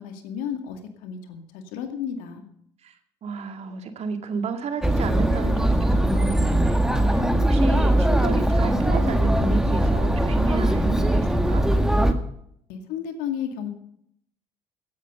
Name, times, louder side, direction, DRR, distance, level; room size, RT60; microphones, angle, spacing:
voice 1, 0.0-2.4 12.7-13.7, left 8 dB, 70° left, 6 dB, 2.2 m, -33 dB
voice 2, 3.2-6.8 7.1-11.6, right 5 dB, 50° right, 6 dB, 2.1 m, -31 dB
Chatter, 4.8-12.1, right 1 dB, 5° right, 1.8 m, -20 dB
16.0 x 9.8 x 5.4 m, 0.71 s
hypercardioid pair, 55°, 14 cm